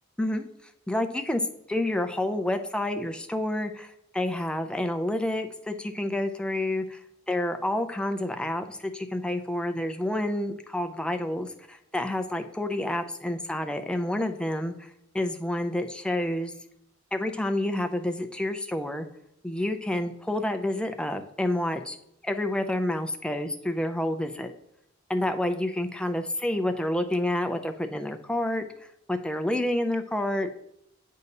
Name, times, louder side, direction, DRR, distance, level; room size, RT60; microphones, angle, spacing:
voice 1, 0.9-1.4 1.7-7.0 7.3-16.5 17.1-19.1 19.4-22.0 22.2-24.5 25.1-30.5, left 1 dB, 5° left, 6 dB, 0.4 m, -29 dB
8.2 x 2.8 x 5.2 m, 0.75 s
head